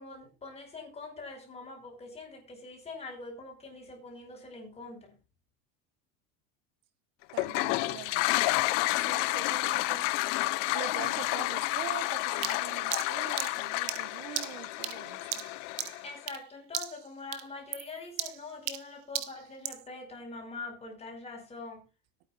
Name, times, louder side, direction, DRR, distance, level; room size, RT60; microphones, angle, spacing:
voice 1, 0.0-5.2 7.9-8.3 16.0-21.9, left 3 dB, 15° left, 1 dB, 5.4 m, -44 dB
Toilet flush, 7.3-16.2, left 20 dB, 75° left, 1.0 m, -30 dB
voice 2, 7.3-8.3 8.9-10.4 10.7-15.4, right 13 dB, 55° right, 12 dB, 1.3 m, -44 dB
sound 1, 12.4-16.5 16.7-17.1 17.3-19.9, right 14 dB, 75° right, 1.5 m, -37 dB
22.0 x 9.5 x 2.5 m, 0.29 s
cardioid pair, 155°, 37 cm